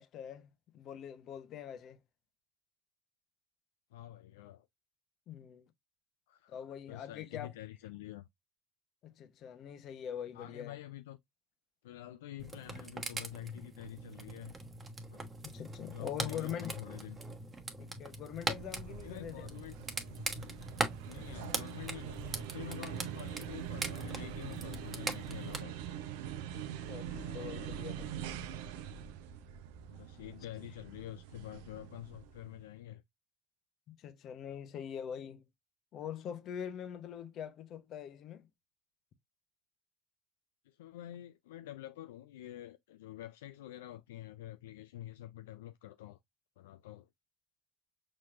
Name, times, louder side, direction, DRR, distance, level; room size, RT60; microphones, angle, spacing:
voice 1, 0.0-2.0 5.3-5.7 6.5-7.5 9.0-10.8 15.4-16.8 17.8-19.7 26.5-28.2 33.9-35.4 35.9-38.5, left 9 dB, 55° left, 0.8 m, -43 dB
voice 2, 3.9-4.7 6.3-6.6 6.9-8.3 10.3-11.2 11.8-14.6 15.1-15.2 15.9-17.2 19.0-19.7 21.0-25.8 27.1-27.7 29.9-33.0 40.7-46.2 46.6-47.1, left 13 dB, 85° left, 0.3 m, -48 dB
sound 1, 12.4-25.6, right 3 dB, 25° right, 1.1 m, -41 dB
sound 2, 18.1-32.6, right 9 dB, 75° right, 0.6 m, -44 dB
5.8 x 3.1 x 2.5 m
hypercardioid pair, 70°, 0 cm